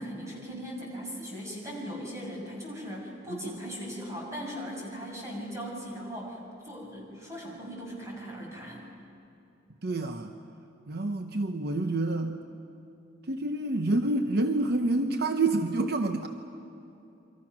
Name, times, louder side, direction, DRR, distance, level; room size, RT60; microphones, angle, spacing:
voice 1, 0.0-8.9, equal, 15° right, -3 dB, 6.3 m, -39 dB
voice 2, 9.8-10.3 10.9-12.4 13.3-16.3, right 2 dB, 55° right, 6 dB, 0.9 m, -28 dB
28.5 x 24.5 x 6.1 m, 2.8 s
head